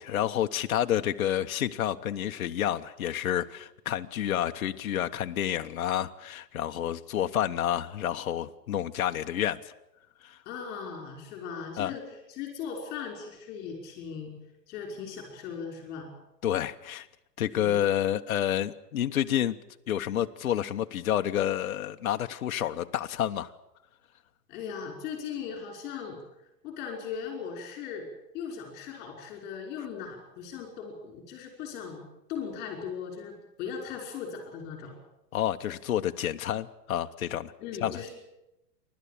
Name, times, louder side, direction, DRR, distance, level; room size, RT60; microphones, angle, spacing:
voice 1, 0.0-9.6 10.2-10.4 11.8-11.9 16.4-17.1 17.4-19.6 19.9-23.5 35.3-37.5 37.8-38.1, left 11 dB, 60° left, 7 dB, 1.1 m, -29 dB
voice 2, 10.5-14.3 14.7-16.1 17.5-17.7 24.5-26.2 26.6-28.1 28.3-32.0 32.3-35.0 37.6-38.1, left 6 dB, 20° left, 3 dB, 5.4 m, -38 dB
29.5 x 12.5 x 8.6 m, 0.91 s
hypercardioid pair, 165°, 48 cm